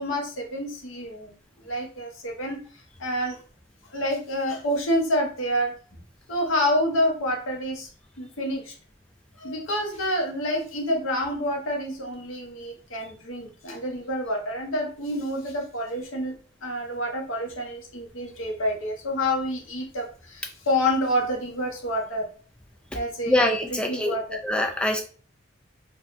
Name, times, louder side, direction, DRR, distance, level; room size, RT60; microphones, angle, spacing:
voice 1, 0.0-2.6 3.0-3.4 3.9-6.0 6.3-7.9 8.2-8.7 9.4-16.3 16.6-22.3 22.9-23.3 23.7-24.4, equal, 90° left, 1 dB, 0.8 m, -28 dB
voice 2, 23.3-24.2 24.4-25.0, left 1 dB, 5° left, 2 dB, 0.3 m, -23 dB
3.3 x 2.2 x 2.5 m, 0.41 s
head